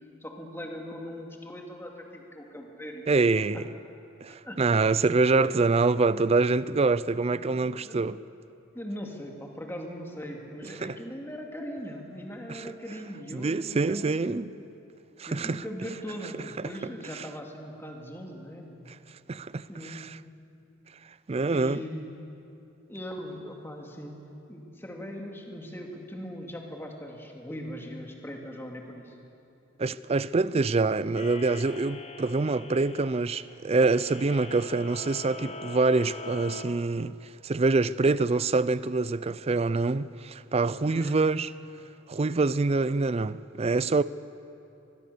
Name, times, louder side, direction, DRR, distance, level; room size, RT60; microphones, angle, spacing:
voice 1, 0.2-3.3 3.5-3.6 4.3-4.9 5.4-5.6 7.3-8.0 8.7-14.5 15.3-18.9 19.7-20.1 21.4-22.2 22.9-24.2 24.5-29.2 40.9-41.2, equal, 10° left, 2.3 m, -40 dB
voice 2, 3.1-3.6 4.2-8.2 10.8-11.0 12.5-12.6 13.3-14.5 15.2-15.6 16.6-16.7 19.3-20.2 21.3-21.8 29.8-37.2 37.4-41.5 42.1-44.0, right 3 dB, 30° right, 0.4 m, -25 dB
sound 1, 31.1-36.6, left 3 dB, 30° left, 1.0 m, -42 dB
23.0 x 21.0 x 6.8 m
head